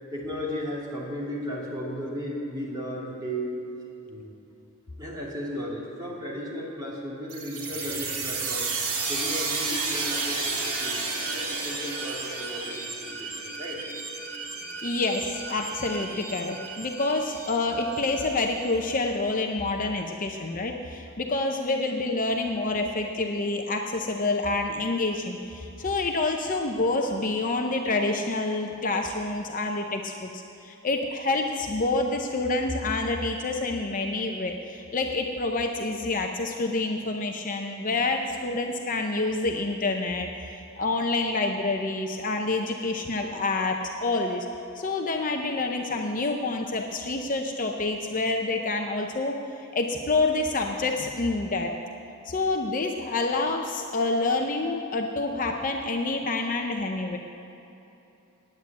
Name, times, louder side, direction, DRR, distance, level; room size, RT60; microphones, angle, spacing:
voice 1, 0.1-3.6 4.1-4.3 5.0-8.7 9.1-13.8, equal, 20° right, -5 dB, 2.5 m, -35 dB
sound 1, 7.3-18.7, right 4 dB, 80° right, 2.0 m, -32 dB
voice 2, 14.8-44.5 44.8-49.4 49.7-51.7 52.3-57.2, left 2 dB, 35° left, 3 dB, 0.7 m, -27 dB
9.7 x 9.1 x 8.4 m, 2.9 s
head